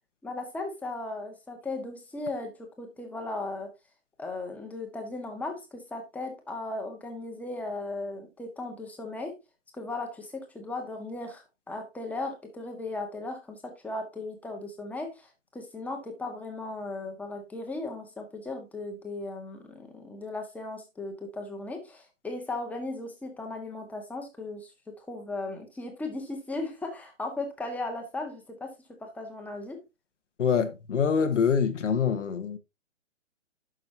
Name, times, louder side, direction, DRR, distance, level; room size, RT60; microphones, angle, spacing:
voice 1, 0.2-3.7 4.2-9.4 9.7-29.8, left 2 dB, 5° left, 1.6 m, -37 dB
voice 2, 30.4-32.6, left 6 dB, 75° left, 1.3 m, -25 dB
11.0 x 6.4 x 2.8 m
hypercardioid pair, 140°, 37 cm